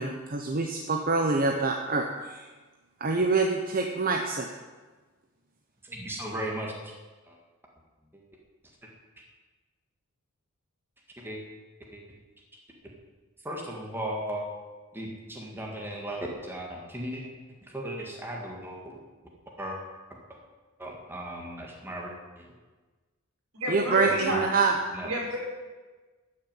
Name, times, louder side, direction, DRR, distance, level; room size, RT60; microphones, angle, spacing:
voice 1, 0.0-2.5 3.0-4.5 23.7-24.8, right 3 dB, 40° right, 3 dB, 0.9 m, -26 dB
voice 2, 5.8-6.9 7.3-7.4 8.1-8.2 11.2-11.4 11.9-12.0 13.4-14.4 14.9-17.3 17.7-19.0 19.6-19.8 20.8-22.5 24.0-24.4 24.9-25.1, right 1 dB, 10° right, -1 dB, 1.9 m, -36 dB
voice 3, 23.5-24.4 25.0-25.4, right 1 dB, 80° right, -3 dB, 4.7 m, -30 dB
13.0 x 6.5 x 9.0 m, 1.3 s
head